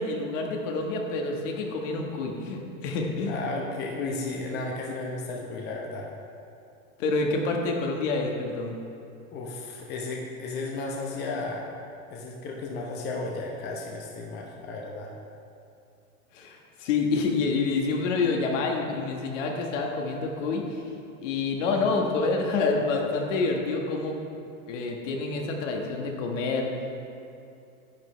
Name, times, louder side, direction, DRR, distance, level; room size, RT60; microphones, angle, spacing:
voice 1, 0.0-3.4 7.0-8.8 16.3-20.8 21.2-24.1 24.7-26.7, left 3 dB, 60° left, 1 dB, 1.5 m, -27 dB
voice 2, 3.3-6.1 9.3-11.8 12.1-15.1, left 3 dB, 25° left, -1 dB, 0.8 m, -34 dB
10.5 x 9.4 x 3.3 m, 2.6 s
supercardioid pair, 140°, 41 cm